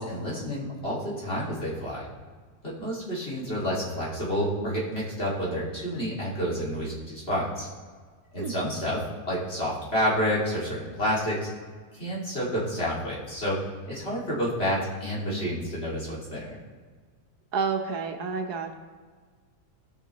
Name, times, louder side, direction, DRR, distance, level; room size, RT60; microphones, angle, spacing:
voice 1, 0.0-2.1 2.6-7.7 8.3-9.0 9.3-11.5 11.9-13.6 13.8-16.6, equal, 35° left, -6 dB, 2.7 m, -29 dB
voice 2, 17.5-18.7, right 5 dB, 70° right, 4 dB, 1.4 m, -29 dB
17.0 x 6.5 x 3.0 m, 1.5 s
omnidirectional pair, 1.7 m